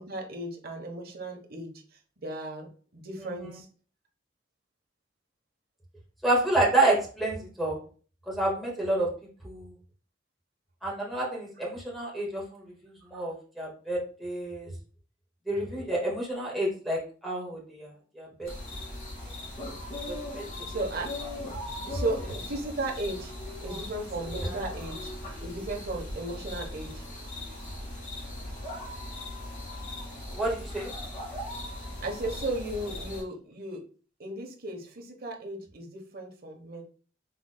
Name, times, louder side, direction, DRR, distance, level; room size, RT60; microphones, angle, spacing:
voice 1, 0.0-1.7 2.2-2.7 2.9-3.7 20.6-21.1 21.9-23.3 23.6-25.1 25.4-27.0 32.0-33.8 34.2-36.8, right 2 dB, 55° right, 1 dB, 1.1 m, -35 dB
voice 2, 6.2-7.8 8.3-9.1 9.4-9.7 10.8-12.6 13.1-14.7 15.5-17.9 18.1-18.5 20.3-20.4 21.9-22.0 23.7-23.8 24.4-24.6 30.3-30.9, right 2 dB, ahead, -5 dB, 1.7 m, -29 dB
sound 1, 18.4-33.2, left 1 dB, 40° left, 2.3 m, -39 dB
6.0 x 3.7 x 2.2 m, 0.40 s
head